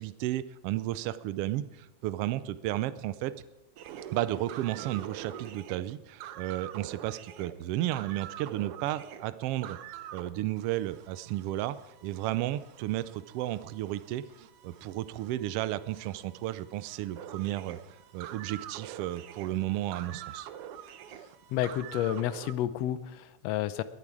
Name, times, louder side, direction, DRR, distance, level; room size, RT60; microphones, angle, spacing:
voice 1, 0.0-3.3 4.1-9.8 10.1-11.8 12.0-17.8 18.1-20.5, right 14 dB, 85° right, 14 dB, 1.3 m, -33 dB
sound 1, 3.8-10.3 10.6-22.5, right 10 dB, 70° right, 1.4 m, -46 dB
voice 2, 21.5-23.8, left 12 dB, 75° left, 13 dB, 1.7 m, -30 dB
21.0 x 11.0 x 4.8 m, 1.0 s
omnidirectional pair, 3.4 m